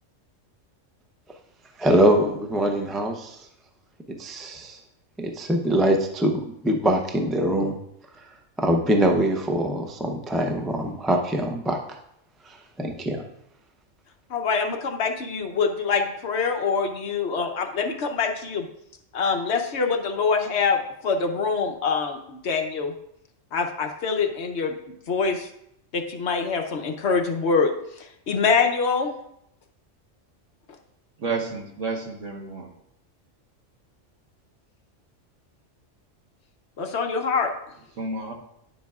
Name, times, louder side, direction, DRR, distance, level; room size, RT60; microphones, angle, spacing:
voice 1, 1.8-3.5 4.1-4.8 5.2-7.7 8.6-11.8 12.4-13.2, right 1 dB, ahead, 2 dB, 0.4 m, -23 dB
voice 2, 14.3-18.7 19.1-22.9 23.5-25.5 25.9-29.2 36.8-37.5, left 5 dB, 60° left, 4 dB, 1.0 m, -25 dB
voice 3, 31.2-32.7 38.0-38.3, right 4 dB, 75° right, 1 dB, 1.6 m, -30 dB
10.5 x 7.3 x 2.4 m, 0.76 s
omnidirectional pair, 1.3 m